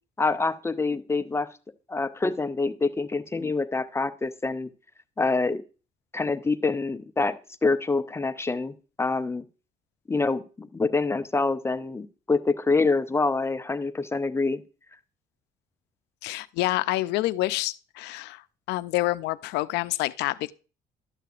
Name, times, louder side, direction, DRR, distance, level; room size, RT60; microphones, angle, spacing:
voice 1, 0.2-1.5 1.9-4.7 5.2-5.6 6.1-7.4 7.6-9.4 10.1-14.6, left 3 dB, 15° left, 0.4 m, -26 dB
voice 2, 16.2-18.4 18.7-20.5, left 18 dB, 85° left, 0.4 m, -27 dB
11.5 x 6.6 x 2.4 m
cardioid pair, 110°, 17 cm